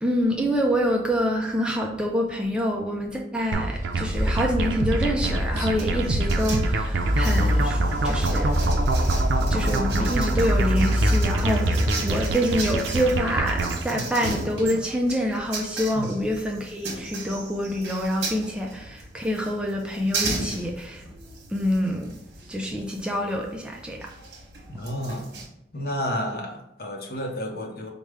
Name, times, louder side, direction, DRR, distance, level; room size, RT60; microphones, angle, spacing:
voice 1, 0.0-8.5 9.5-21.0 21.5-22.1 22.5-24.1, equal, 5° right, 0 dB, 0.3 m, -26 dB
sound 1, 3.5-14.3, equal, 50° right, 0.7 m, -26 dB
sound 2, 3.5-13.8, right 3 dB, 85° right, 0.4 m, -27 dB
sound 3, 5.8-25.5, right 3 dB, 70° right, 1.0 m, -37 dB
voice 2, 24.7-25.3 25.7-27.9, equal, 55° left, 2 dB, 0.7 m, -31 dB
4.9 x 2.1 x 3.3 m, 0.83 s
head